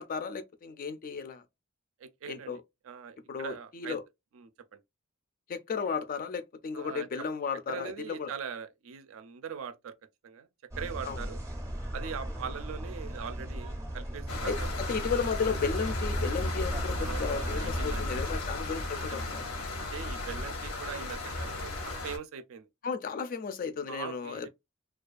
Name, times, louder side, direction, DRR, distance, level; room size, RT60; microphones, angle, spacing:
voice 1, 0.0-1.4 2.3-2.6 3.3-4.0 5.5-8.3 11.1-11.2 14.4-19.4 22.8-24.5, left 5 dB, 45° left, 0.3 m, -34 dB
voice 2, 2.0-4.0 4.3-4.8 6.7-7.3 7.7-9.9 10.2-10.5 10.8-11.4 11.9-14.7 15.9-16.1 17.0-18.4 19.1-19.3 19.9-22.7 23.9-24.5, right 7 dB, 70° right, 0.4 m, -41 dB
sound 1, 10.7-18.4, equal, 15° right, 0.5 m, -37 dB
sound 2, 14.3-22.2, left 2 dB, 80° left, 0.7 m, -35 dB
2.3 x 2.2 x 2.4 m
head